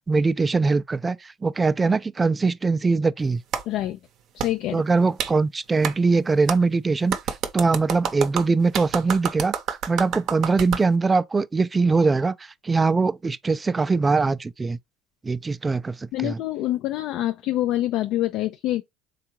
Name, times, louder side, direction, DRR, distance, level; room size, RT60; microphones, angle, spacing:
voice 1, 0.1-3.4 4.7-7.2 7.5-9.5 9.9-12.3 12.6-14.8 15.2-16.4, right 4 dB, 25° right, 0.3 m, -22 dB
Clapping, 3.5-3.6 4.4-4.5 5.2-5.3 5.8-5.9 6.5-6.6 7.1-10.8, right 8 dB, 60° right, 0.7 m, -28 dB
voice 2, 3.7-4.0 4.3-4.8 16.1-18.8, left 14 dB, 65° left, 0.3 m, -26 dB
3.5 x 2.3 x 2.9 m
supercardioid pair, 75°, 0 cm